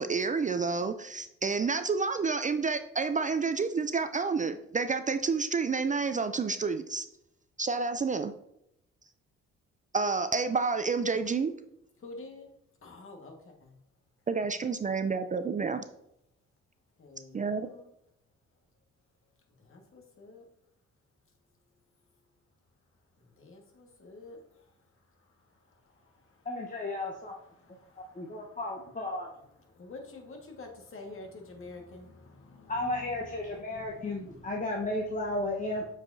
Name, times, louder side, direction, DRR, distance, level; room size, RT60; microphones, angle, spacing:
voice 1, 0.0-7.1 7.6-8.3 9.9-11.5 14.3-15.8 17.3-17.7, right 4 dB, 25° right, 0.4 m, -29 dB
voice 2, 12.0-12.5 12.8-13.8 17.0-17.9 19.6-20.4 23.2-28.6 29.5-35.3 35.8-35.9, left 2 dB, 45° left, 1.7 m, -50 dB
voice 3, 26.4-27.4 28.1-29.3 32.7-35.9, left 2 dB, 25° left, 1.1 m, -33 dB
7.4 x 4.8 x 2.7 m
supercardioid pair, 60°, 29 cm